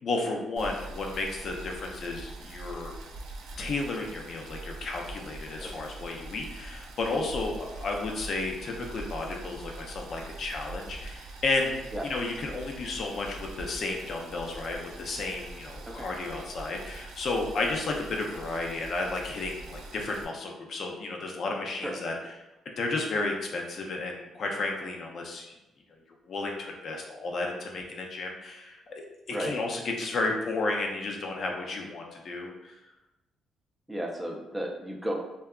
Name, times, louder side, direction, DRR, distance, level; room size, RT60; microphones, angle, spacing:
voice 1, 0.0-3.0 3.6-22.3 22.8-25.5 26.3-29.0 29.3-32.7, left 3 dB, 55° left, 1 dB, 0.4 m, -33 dB
Boiling, 0.6-20.3, right 2 dB, 85° right, 0.3 m, -43 dB
voice 2, 33.9-35.1, equal, 10° right, 0 dB, 0.4 m, -34 dB
2.6 x 2.2 x 2.3 m, 0.99 s
cardioid pair, 90°, 0 cm